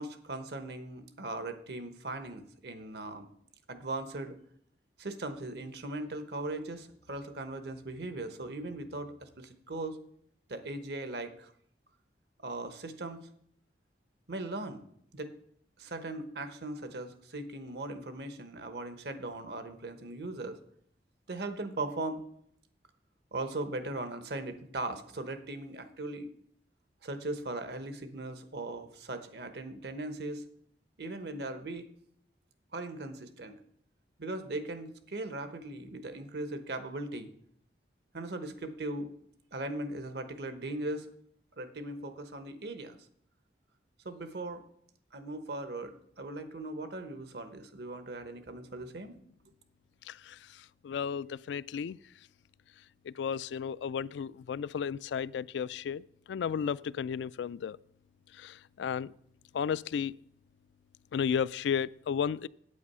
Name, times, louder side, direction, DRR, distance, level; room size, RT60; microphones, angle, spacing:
voice 1, 0.0-3.3 3.7-4.4 5.0-10.0 10.5-11.5 12.4-13.3 14.3-14.8 15.1-15.3 15.8-20.6 21.3-22.2 23.3-26.3 27.0-30.4 31.0-31.9 32.7-33.6 34.2-37.3 38.1-39.1 39.5-41.1 41.6-43.0 44.0-44.6 45.1-49.2, right 2 dB, 70° right, 9 dB, 1.0 m, -39 dB
voice 2, 50.8-52.0 53.1-56.0 56.3-57.8 58.4-59.1 59.5-60.1 61.1-62.5, left 7 dB, 85° left, 20 dB, 0.3 m, -33 dB
8.5 x 8.5 x 5.5 m, 0.67 s
head